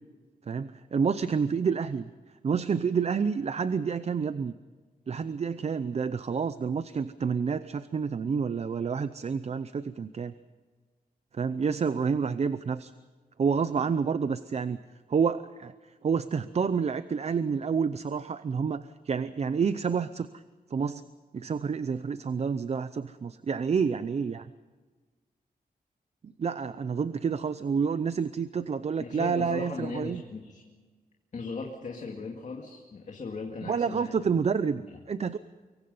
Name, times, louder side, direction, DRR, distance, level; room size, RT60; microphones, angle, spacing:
voice 1, 0.5-2.1 2.4-4.5 5.1-10.3 11.4-12.9 13.4-14.8 15.1-15.7 16.0-20.3 20.7-21.0 21.3-24.5 26.4-30.2 33.7-34.8 35.1-35.4, right 6 dB, 45° right, 13 dB, 0.6 m, -28 dB
voice 2, 29.0-30.6 31.3-34.4 34.7-35.0, left 4 dB, 50° left, 1 dB, 2.2 m, -38 dB
25.0 x 23.5 x 5.5 m, 1.4 s
wide cardioid pair, 170°, 16 cm